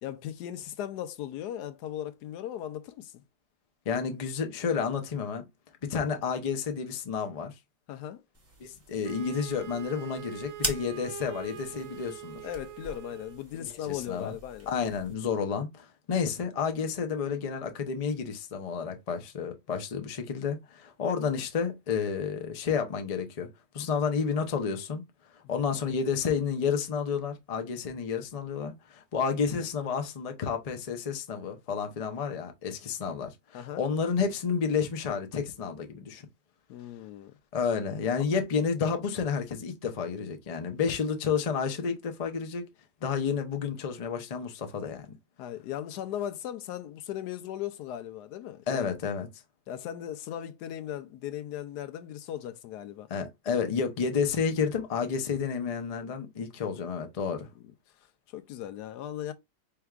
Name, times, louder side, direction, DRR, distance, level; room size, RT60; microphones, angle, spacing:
voice 1, 0.0-3.1 7.9-8.2 12.4-14.7 33.5-33.8 36.7-37.3 38.1-38.2 45.4-48.9 49.7-53.1 58.3-59.3, left 11 dB, 85° left, 1.2 m, -37 dB
voice 2, 3.9-5.4 5.8-7.5 8.6-12.5 13.5-14.4 14.7-23.5 23.7-25.0 25.3-36.2 37.5-42.7 43.0-45.1 48.7-49.3 53.1-57.5, left 6 dB, 70° left, 0.3 m, -30 dB
sound 1, 8.3-15.1, right 2 dB, 15° right, 0.6 m, -42 dB
Wind instrument woodwind instrument, 9.0-13.4, right 9 dB, 60° right, 0.9 m, -43 dB
4.6 x 3.4 x 2.3 m
omnidirectional pair, 1.7 m